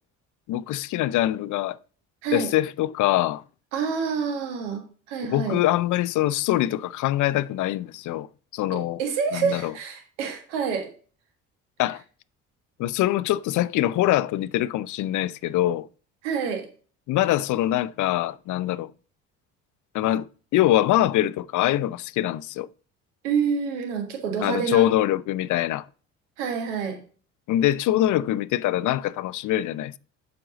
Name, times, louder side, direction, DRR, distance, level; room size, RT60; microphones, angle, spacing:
voice 1, 0.5-1.8 2.3-3.4 5.2-8.3 8.5-9.0 9.3-9.7 11.8-12.0 12.8-15.9 17.1-18.9 19.9-20.3 20.5-22.7 24.4-25.8 27.5-30.0, left 14 dB, 55° left, 0.5 m, -23 dB
voice 2, 3.7-4.8 5.1-5.6 9.0-10.9 16.2-16.7 23.2-24.9 26.4-27.0, right 6 dB, 85° right, 1.7 m, -27 dB
7.6 x 5.2 x 3.9 m
hypercardioid pair, 60°, 36 cm